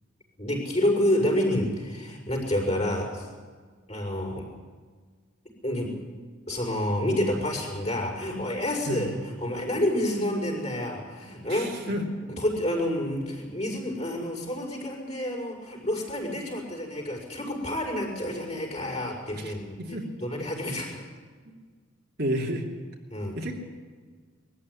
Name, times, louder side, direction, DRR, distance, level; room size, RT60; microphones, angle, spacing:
voice 1, 0.4-3.3 3.9-4.5 5.6-5.9 6.5-11.9 12.4-21.0 23.1-23.4, left 1 dB, 30° left, -2 dB, 6.1 m, -29 dB
voice 2, 11.5-12.0 19.3-20.1 22.2-22.7 23.4-23.5, equal, 50° right, 0 dB, 2.6 m, -31 dB
22.0 x 14.5 x 10.0 m, 1.6 s
head